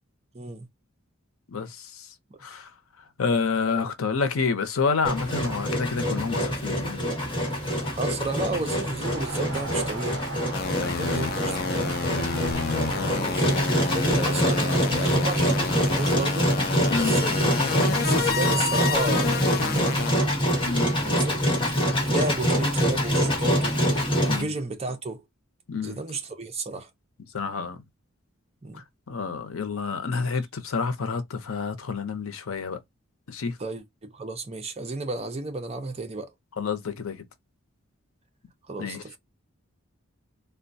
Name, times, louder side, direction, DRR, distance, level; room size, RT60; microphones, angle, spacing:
voice 1, 0.3-0.7 8.0-10.2 10.9-11.8 12.9-16.5 16.9-20.3 21.0-25.2 25.8-26.9 28.6-28.8 30.2-30.3 33.6-36.3 38.7-39.2, right 3 dB, 30° right, 0.6 m, -33 dB
voice 2, 1.5-2.1 2.4-2.7 3.2-7.0 10.8-11.2 12.9-13.2 16.9-17.1 20.6-20.9 24.2-24.5 25.7-26.0 27.3-27.8 28.7-32.8 33.3-33.6 36.6-37.2 38.8-39.0, left 5 dB, 85° left, 0.7 m, -29 dB
Engine, 5.0-24.4, equal, 25° left, 1.3 m, -25 dB
sound 1, 9.0-14.2, right 3 dB, 60° right, 0.9 m, -38 dB
sound 2, 10.5-20.1, left 5 dB, 45° left, 0.4 m, -30 dB
3.6 x 2.2 x 2.6 m
head